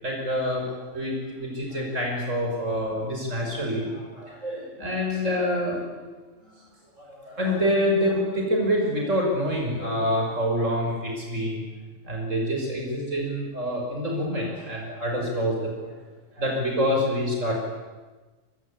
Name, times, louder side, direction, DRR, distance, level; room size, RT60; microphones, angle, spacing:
voice 1, 0.0-6.1 6.4-6.5 7.0-11.6 12.0-16.0 16.4-17.6, equal, 80° right, 0 dB, 6.2 m, -27 dB
28.5 x 23.5 x 8.6 m, 1.2 s
omnidirectional pair, 1.3 m